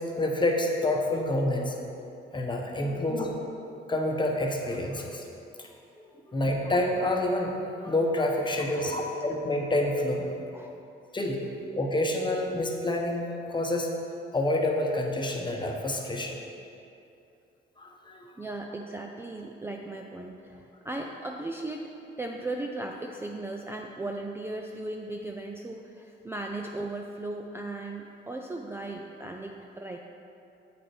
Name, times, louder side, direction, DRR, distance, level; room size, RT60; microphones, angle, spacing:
voice 1, 0.0-1.8 2.3-3.4 3.9-5.3 5.6-5.7 6.0-10.3 11.1-11.5 11.7-13.9 14.3-16.4 17.8-18.3, left 1 dB, 25° left, 1 dB, 1.0 m, -28 dB
voice 2, 2.8-3.2 6.2-6.3 8.7-9.0 10.5-10.8 18.4-30.0, right 2 dB, 10° right, 1 dB, 0.4 m, -37 dB
8.2 x 5.0 x 4.4 m, 2.7 s
cardioid pair, 90°, 20 cm